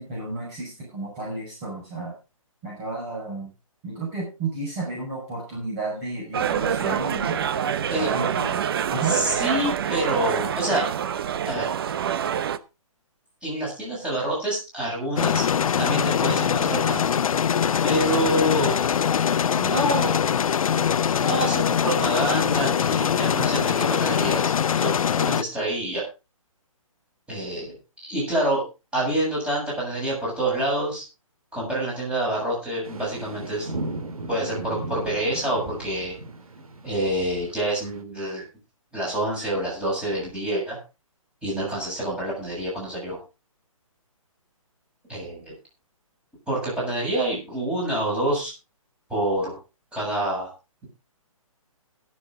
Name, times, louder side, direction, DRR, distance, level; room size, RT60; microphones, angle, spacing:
voice 1, 0.0-2.1 2.6-3.5 3.8-7.4 7.9-8.6 8.9-9.2, right 3 dB, 25° right, -3 dB, 6.1 m, -32 dB
sound 1, 6.3-12.6, right 8 dB, 40° right, 0.8 m, -26 dB
voice 2, 9.0-10.9 11.5-11.7 13.4-15.4 15.8-17.1 17.8-18.8 19.5-20.2 21.2-24.5 24.8-26.1 27.3-27.8 28.0-28.6 28.9-31.0 31.5-33.7 34.3-36.1 36.8-38.4 38.9-40.8 41.4-43.2 45.1-45.5 46.5-48.5 49.1-49.6 49.9-50.5, right 1 dB, 5° right, -5 dB, 7.7 m, -27 dB
sound 2, 15.2-25.4, left 8 dB, 70° left, 0.5 m, -22 dB
sound 3, 32.8-38.0, right 2 dB, 80° right, 2.4 m, -36 dB
21.0 x 7.6 x 3.7 m, 0.29 s
hypercardioid pair, 155°, 18 cm